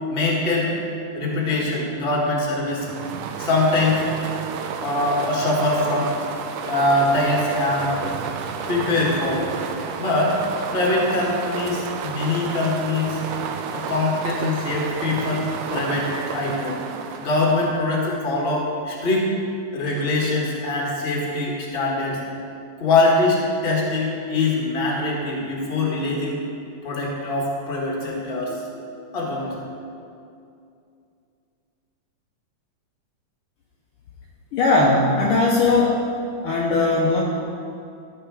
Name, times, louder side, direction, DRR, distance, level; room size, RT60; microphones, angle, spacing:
voice 1, 0.1-0.7 1.1-2.9 3.4-4.0 4.8-6.1 6.7-7.9 8.7-9.4 10.0-10.4 10.7-13.2 13.7-16.8 17.2-19.3 19.7-22.2 22.8-26.4 26.8-28.6 29.1-29.5, left 2 dB, 30° left, -3 dB, 1.0 m, -23 dB
sound 1, 2.6-18.0, right 6 dB, 85° right, 2.2 m, -31 dB
voice 2, 34.5-36.0 36.4-37.2, left 3 dB, 85° left, -3 dB, 1.2 m, -19 dB
13.5 x 5.8 x 4.8 m, 2.5 s
omnidirectional pair, 3.6 m